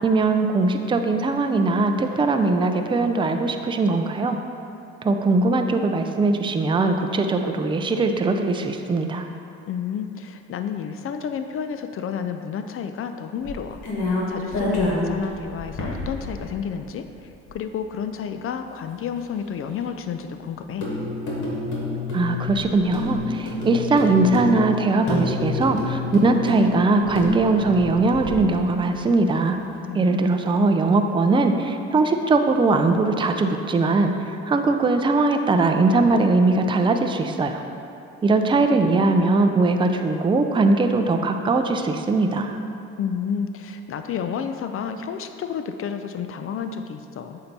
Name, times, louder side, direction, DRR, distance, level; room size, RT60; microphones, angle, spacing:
voice 1, 0.0-4.4 5.0-9.2 22.1-29.6 29.9-37.6 38.2-42.6, right 3 dB, 15° right, 5 dB, 0.4 m, -20 dB
voice 2, 9.7-17.1 17.5-20.9 29.9-30.2 43.0-47.4, left 7 dB, 50° left, 8 dB, 0.4 m, -31 dB
sound 1, 13.4-16.6 17.2-17.3 17.5-17.6 20.8-28.5, left 2 dB, 75° left, 1.5 m, -28 dB
7.7 x 2.8 x 5.3 m, 2.7 s
supercardioid pair, 75°, 30 cm